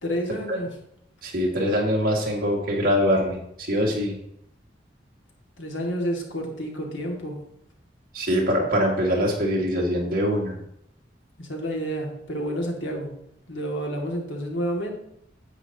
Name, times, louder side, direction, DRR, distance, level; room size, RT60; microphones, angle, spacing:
voice 1, 0.0-0.7 5.6-7.4 11.4-13.1 13.5-14.9, equal, 85° left, 0 dB, 2.1 m, -29 dB
voice 2, 1.2-3.4 3.7-4.2 8.1-10.6, equal, 55° right, -1 dB, 2.1 m, -23 dB
10.0 x 7.8 x 2.9 m, 0.74 s
head